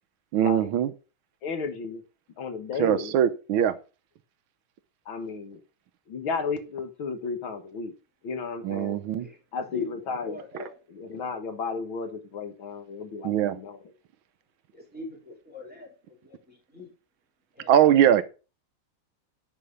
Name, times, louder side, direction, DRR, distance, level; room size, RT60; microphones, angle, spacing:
voice 1, 0.3-0.9 2.8-3.8 8.6-9.3 13.2-13.6 17.7-18.2, right 10 dB, 75° right, 1.6 m, -21 dB
voice 2, 1.4-2.0 2.4-3.1 5.1-5.6 6.1-7.9 8.2-9.0 9.5-10.4 11.0-13.8, left 5 dB, 70° left, 2.3 m, -33 dB
voice 3, 9.2-10.8 14.7-16.9 17.5-18.2, left 4 dB, 5° right, 3.7 m, -41 dB
9.9 x 6.2 x 5.5 m
omnidirectional pair, 2.4 m